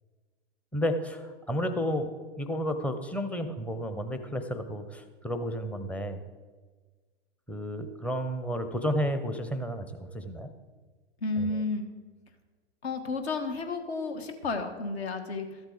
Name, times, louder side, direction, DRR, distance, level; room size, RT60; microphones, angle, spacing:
voice 1, 0.7-2.1 2.4-6.2 7.5-10.5 11.4-11.6, equal, 5° left, 7 dB, 0.6 m, -32 dB
voice 2, 11.2-11.9 12.8-15.6, left 3 dB, 65° left, 6 dB, 1.4 m, -32 dB
13.0 x 8.0 x 3.9 m, 1.4 s
hypercardioid pair, 105°, 34 cm